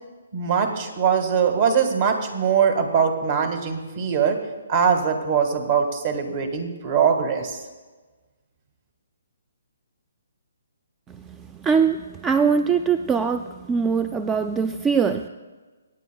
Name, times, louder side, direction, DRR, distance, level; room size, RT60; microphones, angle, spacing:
voice 1, 0.3-4.4 4.7-7.6, right 7 dB, 45° right, 6 dB, 1.7 m, -22 dB
voice 2, 11.6-15.3, right 6 dB, 15° right, 9 dB, 0.3 m, -22 dB
24.5 x 9.1 x 2.3 m, 1.3 s
hypercardioid pair, 140°, 0 cm